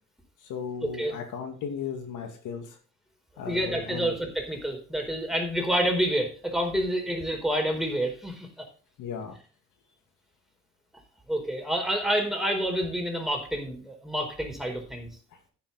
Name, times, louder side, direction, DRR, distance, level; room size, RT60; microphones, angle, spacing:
voice 1, 0.5-2.8 3.4-4.1 9.0-9.4, left 6 dB, 80° left, 6 dB, 2.2 m, -36 dB
voice 2, 3.4-8.6 11.3-15.1, equal, ahead, 2 dB, 4.3 m, -28 dB
10.5 x 9.5 x 4.2 m, 0.40 s
cardioid pair, 90°, 30 cm